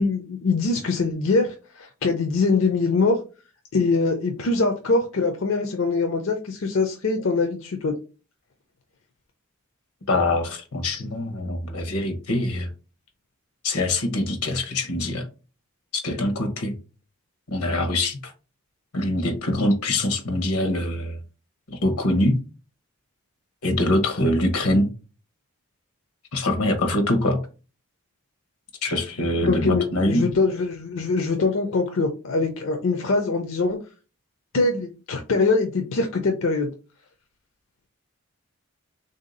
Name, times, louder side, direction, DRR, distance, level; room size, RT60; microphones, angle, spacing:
voice 1, 0.0-3.2 3.7-8.0 29.4-33.8 34.5-36.7, left 3 dB, 60° left, 0.5 m, -23 dB
voice 2, 10.1-12.7 13.6-15.3 15.9-16.8 17.5-18.3 18.9-21.2 21.7-22.4 23.6-24.9 26.3-27.4 28.8-30.3, left 1 dB, 80° left, 0.9 m, -24 dB
3.4 x 2.7 x 3.8 m
head